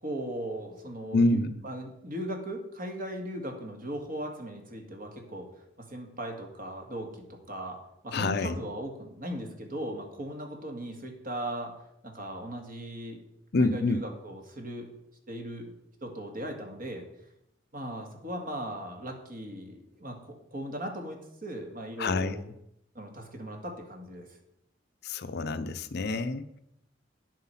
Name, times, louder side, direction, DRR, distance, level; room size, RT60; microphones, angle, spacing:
voice 1, 0.0-1.4 1.6-5.5 5.8-7.8 8.0-11.7 12.0-13.2 13.6-14.9 15.3-15.7 16.0-17.1 17.7-22.4 22.9-24.3, right 1 dB, 50° right, 3 dB, 2.1 m, -38 dB
voice 2, 1.1-1.6 8.1-8.6 13.5-14.0 22.0-22.5 25.0-26.6, left 2 dB, 60° left, 11 dB, 0.6 m, -27 dB
9.7 x 7.8 x 5.8 m, 0.81 s
head